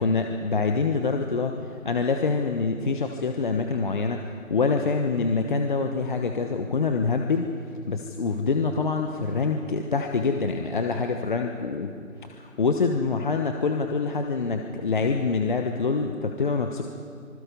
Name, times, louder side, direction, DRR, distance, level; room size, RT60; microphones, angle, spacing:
voice 1, 0.0-1.5 1.8-4.2 4.5-7.5 7.9-11.9 12.3-16.8, left 4 dB, 35° left, 4 dB, 1.1 m, -25 dB
26.0 x 20.0 x 5.4 m, 2.2 s
figure-of-eight pair, 155°, 42 cm